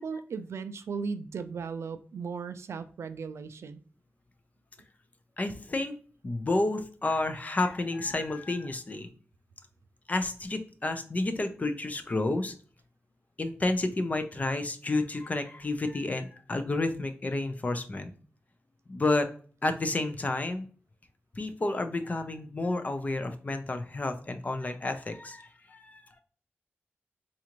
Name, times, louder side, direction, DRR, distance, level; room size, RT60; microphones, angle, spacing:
voice 1, 0.0-3.8, right 5 dB, 80° right, 0.4 m, -36 dB
voice 2, 5.4-5.9 6.2-9.1 10.1-12.5 13.4-18.1 18.9-19.3 19.6-20.7 21.3-26.2, left 2 dB, 35° left, 0.6 m, -30 dB
4.1 x 2.5 x 2.9 m
wide cardioid pair, 90°, 5 cm